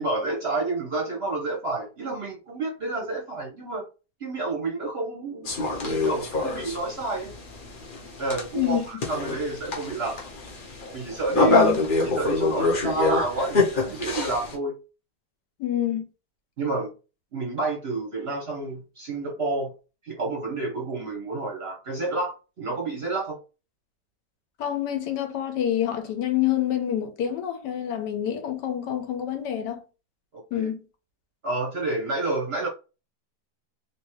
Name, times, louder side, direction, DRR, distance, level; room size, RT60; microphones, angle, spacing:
voice 1, 0.0-3.9 4.2-5.5 5.8-7.3 8.2-10.2 10.9-11.7 12.0-14.7 16.6-16.9 17.3-19.7 20.0-23.4 30.3-30.7 31.4-32.7, right 3 dB, 50° right, 0.8 m, -29 dB
sound 1, 5.5-14.6, left 3 dB, 50° left, 0.6 m, -26 dB
voice 2, 11.5-11.8 15.6-16.0 24.6-29.8 30.5-30.8, left 11 dB, 80° left, 1.3 m, -27 dB
3.4 x 2.7 x 3.0 m
omnidirectional pair, 1.9 m